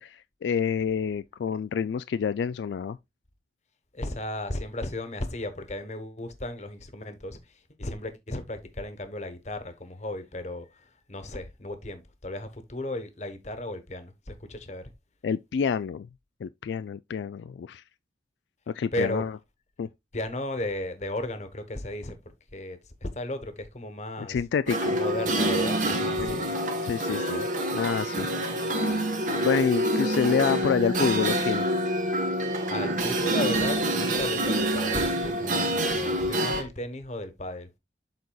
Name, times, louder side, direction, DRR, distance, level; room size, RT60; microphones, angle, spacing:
voice 1, 0.0-3.0 15.2-16.1 16.4-17.8 18.7-19.4 19.8-19.9 24.2-25.0 26.2-26.4 26.8-28.3 29.3-31.7, left 6 dB, 80° left, 0.3 m, -28 dB
voice 2, 3.9-7.4 7.8-14.9 18.9-19.2 20.1-24.4 25.0-26.5 32.7-37.7, left 1 dB, 40° left, 1.1 m, -35 dB
sound 1, 24.7-36.6, right 1 dB, 45° right, 1.2 m, -27 dB
12.0 x 4.1 x 2.3 m
head